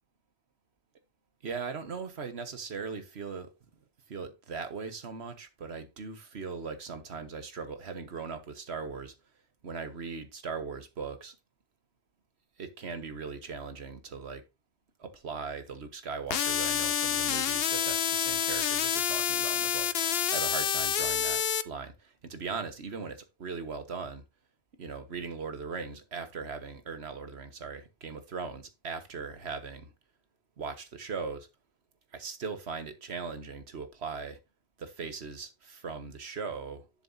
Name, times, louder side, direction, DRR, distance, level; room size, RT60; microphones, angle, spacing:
voice 1, 1.4-3.5 4.1-9.1 9.6-11.4 12.6-14.4 15.0-24.2 24.8-29.9 30.6-31.5 32.1-34.4 34.8-36.9, right 5 dB, 80° right, 1.5 m, -39 dB
sound 1, 16.3-21.6, left 9 dB, 70° left, 0.9 m, -28 dB
11.0 x 6.8 x 2.7 m
omnidirectional pair, 1.1 m